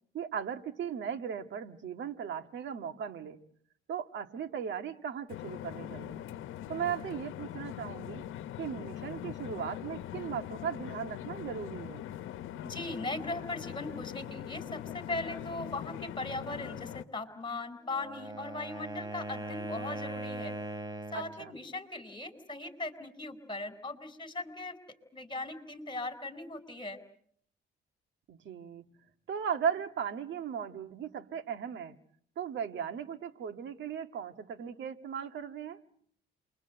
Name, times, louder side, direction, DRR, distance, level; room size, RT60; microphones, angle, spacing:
voice 1, 0.1-3.4 3.9-6.2 6.7-8.2 8.6-12.1 21.1-21.5 28.3-28.8 29.3-31.9 32.4-35.8, right 8 dB, 70° right, 8 dB, 1.9 m, -37 dB
sound 1, 5.3-17.0, left 12 dB, 85° left, 1.1 m, -42 dB
voice 2, 12.6-20.5 21.1-24.8 25.1-27.0, left 2 dB, 25° left, 11 dB, 4.5 m, -39 dB
Wind instrument woodwind instrument, 17.8-21.4, right 2 dB, 20° right, 2.8 m, -40 dB
29.0 x 23.0 x 8.0 m, 0.63 s
cardioid pair, 90°, 20 cm